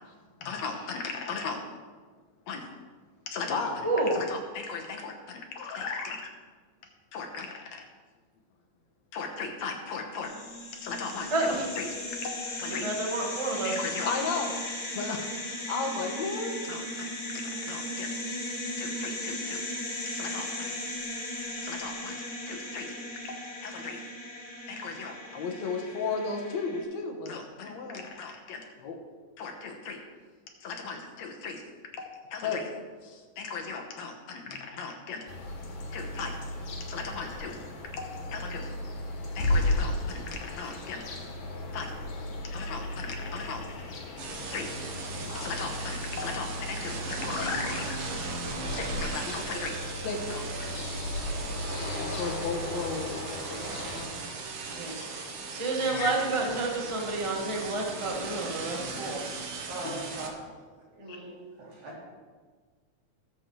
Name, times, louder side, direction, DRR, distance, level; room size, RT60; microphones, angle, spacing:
voice 1, 0.4-1.6 2.5-2.7 3.3-6.3 7.1-7.8 9.1-10.3 10.7-11.9 12.2-12.9 13.6-14.7 14.9-15.3 15.7-18.1 18.8-19.6 20.1-20.7 21.6-22.9 23.2-24.0 24.7-29.0 29.4-30.0 30.6-31.6 32.0-32.7 33.0-35.2 35.9-36.4 36.9-37.6 37.9-38.7 39.4-41.0 41.7-41.9 42.5-43.6 44.5-44.7 45.2-48.0 48.7-50.7 52.0-53.9 55.9-56.1 59.8-60.0 61.1-61.2, left 4 dB, 70° left, 2 dB, 2.3 m, -36 dB
voice 2, 3.8-4.2 11.3-11.7 12.6-13.9 54.7-55.1 55.5-59.2, right 2 dB, 25° right, -1 dB, 0.7 m, -30 dB
sound 1, 10.2-26.8, left 1 dB, 45° left, 2.8 m, -37 dB
sound 2, 35.3-54.1, left 1 dB, 85° left, 3.1 m, -35 dB
sound 3, 44.2-60.3, right 4 dB, 55° right, 1.6 m, -38 dB
voice 3, 59.7-60.3 60.9-61.9, right 2 dB, 75° right, -5 dB, 4.5 m, -40 dB
19.0 x 7.7 x 3.2 m, 1.5 s
omnidirectional pair, 3.4 m